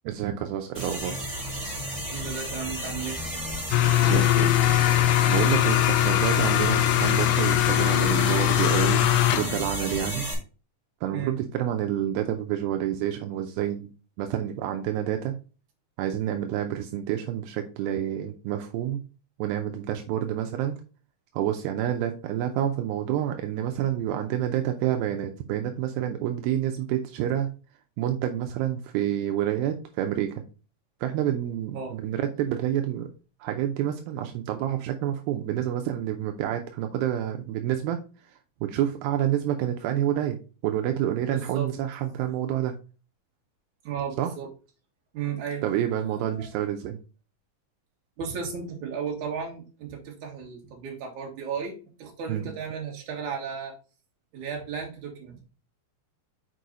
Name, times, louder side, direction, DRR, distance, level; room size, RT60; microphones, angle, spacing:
voice 1, 0.0-1.2 4.0-4.6 5.3-10.3 11.0-13.9 14.2-15.4 16.0-19.0 19.4-20.8 21.3-27.5 28.0-30.3 31.0-33.1 33.4-38.0 38.6-40.4 40.6-42.8 44.2-44.3 45.6-47.0 52.3-52.5, right 11 dB, 85° right, 5 dB, 2.5 m, -28 dB
sound 1, 0.7-10.3, equal, 20° right, 3.2 m, -33 dB
voice 2, 2.1-3.2 11.1-11.3 31.7-32.0 41.3-41.7 43.8-44.5 45.1-45.7 46.3-46.5 48.2-53.8 54.3-55.4, right 6 dB, 60° right, 0 dB, 3.0 m, -34 dB
sound 2, 3.7-9.7, left 14 dB, 80° left, 2.2 m, -21 dB
6.4 x 4.6 x 3.9 m, 0.34 s
omnidirectional pair, 4.2 m